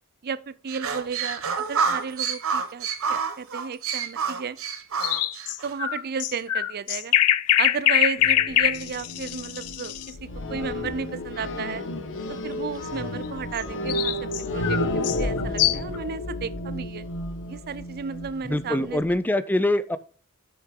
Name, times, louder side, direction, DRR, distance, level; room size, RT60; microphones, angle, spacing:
voice 1, 0.2-4.6 5.6-7.1 7.6-11.8 12.3-17.1 17.5-19.0, right 6 dB, 45° right, 0.5 m, -33 dB
sound 1, 0.7-5.7, right 5 dB, 65° right, 1.1 m, -28 dB
sound 2, 5.0-10.1 13.5-16.0, left 13 dB, 75° left, 0.5 m, -23 dB
sound 3, 8.2-19.1, left 1 dB, 60° left, 1.2 m, -32 dB
voice 2, 18.4-20.0, left 1 dB, 10° left, 0.4 m, -24 dB
7.8 x 6.4 x 3.7 m
head